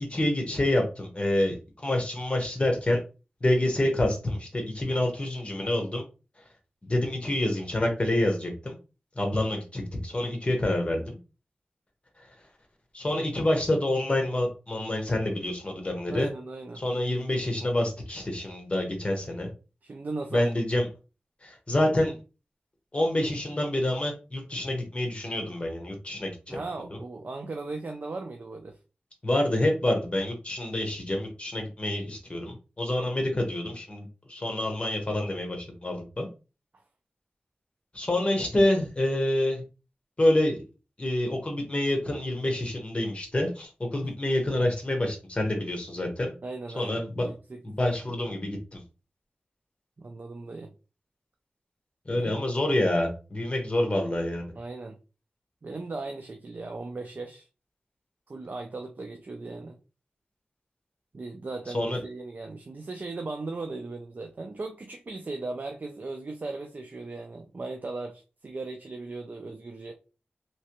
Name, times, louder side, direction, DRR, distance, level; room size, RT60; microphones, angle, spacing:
voice 1, 0.0-3.0 3.4-6.0 6.8-8.8 9.1-11.2 12.9-16.3 16.7-19.5 20.3-20.9 21.4-22.2 22.9-26.6 29.2-36.3 37.9-39.6 40.2-40.6 41.0-46.3 46.7-47.4 47.6-48.8 52.1-54.5 61.7-62.0, left 1 dB, 30° left, 1.1 m, -27 dB
voice 2, 16.1-16.8 19.8-20.5 26.5-28.8 44.0-44.1 46.4-48.2 50.0-50.7 52.1-52.4 54.6-55.0 55.6-57.5 58.3-59.8 61.1-69.9, right 3 dB, 55° right, 0.5 m, -37 dB
3.2 x 3.0 x 3.0 m
wide cardioid pair, 95°, 4 cm